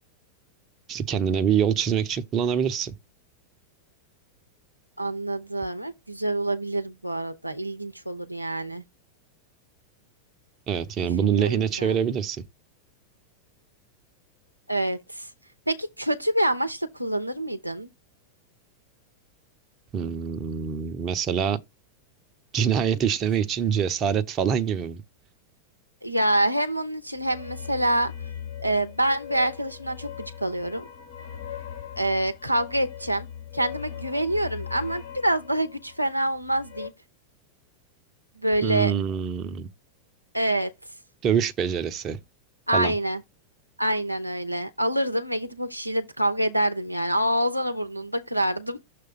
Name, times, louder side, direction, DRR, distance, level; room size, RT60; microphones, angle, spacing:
voice 1, 0.9-2.9 10.7-12.4 19.9-21.6 22.5-25.0 38.6-39.7 41.2-42.2 42.7-42.9, right 7 dB, 30° right, 0.9 m, -25 dB
voice 2, 5.0-8.8 11.2-12.0 14.7-15.3 15.7-17.9 26.0-28.1 28.6-30.8 32.0-33.3 33.5-36.9 38.4-38.9 40.3-40.7 42.7-43.2 43.8-48.8, right 1 dB, 90° right, 0.7 m, -26 dB
sound 1, 27.2-36.9, left 9 dB, 65° left, 2.4 m, -40 dB
6.9 x 3.2 x 5.5 m
figure-of-eight pair, 90°, 0 cm